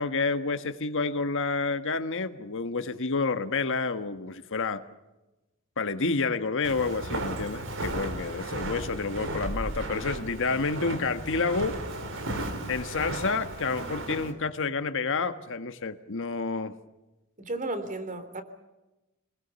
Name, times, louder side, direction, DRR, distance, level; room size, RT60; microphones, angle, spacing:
voice 1, 0.0-4.8 5.8-11.8 12.7-16.7, left 4 dB, 60° left, 9 dB, 1.4 m, -29 dB
Walk footsteps, 6.6-14.3, right 1 dB, 60° right, 3.8 m, -35 dB
voice 2, 17.4-18.4, right 2 dB, 35° right, 10 dB, 3.3 m, -33 dB
28.0 x 21.0 x 7.0 m, 1.0 s
head